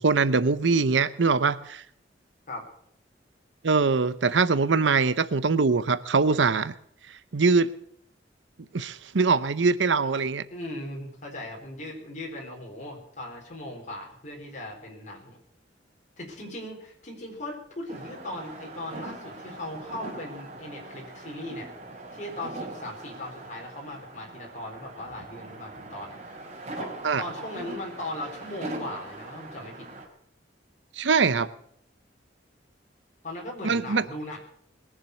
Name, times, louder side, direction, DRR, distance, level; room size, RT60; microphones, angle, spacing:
voice 1, 0.0-1.8 3.6-6.7 7.3-7.7 8.7-10.4 27.0-27.2 31.0-31.5 33.6-34.0, right 4 dB, 75° right, 15 dB, 0.7 m, -22 dB
voice 2, 10.5-15.4 16.2-21.7 22.1-26.4 26.8-29.9 33.2-34.4, left 1 dB, 40° left, -1 dB, 3.9 m, -38 dB
sound 1, 17.9-30.1, right 2 dB, 35° right, 3.9 m, -41 dB
21.0 x 7.4 x 8.0 m, 0.67 s
head